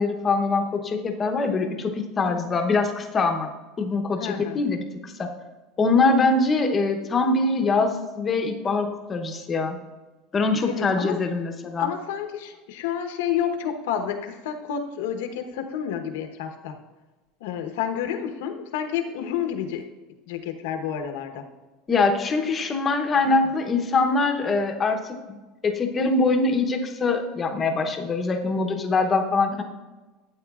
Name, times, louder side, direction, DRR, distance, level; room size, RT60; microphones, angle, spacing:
voice 1, 0.0-3.5 3.8-5.3 5.8-9.8 10.3-11.9 21.9-25.0 25.3-25.4 25.6-29.6, left 3 dB, 20° left, 5 dB, 0.8 m, -23 dB
voice 2, 4.2-4.6 10.6-11.2 11.8-16.8 17.4-19.8 20.3-21.4 23.2-23.3, left 8 dB, 85° left, 5 dB, 1.0 m, -30 dB
12.5 x 8.5 x 2.4 m, 1.2 s
cardioid pair, 165°, 0 cm